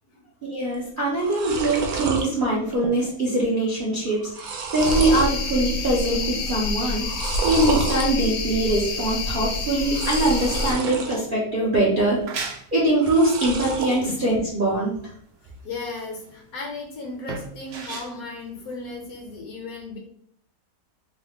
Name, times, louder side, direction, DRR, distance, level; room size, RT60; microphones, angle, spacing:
voice 1, 0.4-7.1 7.4-12.2 12.7-14.9, right 1 dB, 45° right, -6 dB, 0.7 m, -22 dB
sound 1, 0.7-0.8 1.1-2.3 2.7-3.1 3.4-3.5 4.1-5.4 5.8-6.3 7.0-8.1 9.8-11.2 11.6-12.2 13.0-14.0, right 3 dB, 70° right, 1.1 m, -29 dB
sound 2, 4.8-10.7, left 3 dB, 90° left, 1.2 m, -28 dB
sound 3, 12.0-19.4, right 4 dB, 90° right, 0.5 m, -38 dB
voice 2, 15.6-20.0, left 3 dB, 65° left, 0 dB, 1.3 m, -36 dB
3.8 x 2.1 x 3.5 m, 0.63 s
omnidirectional pair, 1.7 m